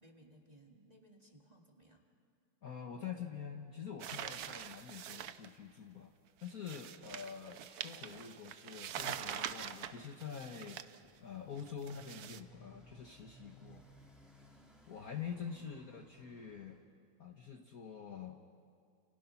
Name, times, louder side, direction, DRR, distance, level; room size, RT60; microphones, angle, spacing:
voice 1, 0.0-2.1 15.5-15.7, right 1 dB, 20° right, 1 dB, 2.2 m, -61 dB
voice 2, 2.6-6.1 6.4-10.8 11.2-13.8 14.9-16.8 17.2-18.4, left 7 dB, 45° left, 3 dB, 1.5 m, -46 dB
sound 1, 4.0-5.5 6.4-11.0 11.6-12.4, right 9 dB, 65° right, 1.0 m, -44 dB
Motorcycle, 10.9-16.8, right 1 dB, ahead, 3.3 m, -62 dB
29.5 x 28.5 x 5.9 m, 2.3 s
omnidirectional pair, 2.4 m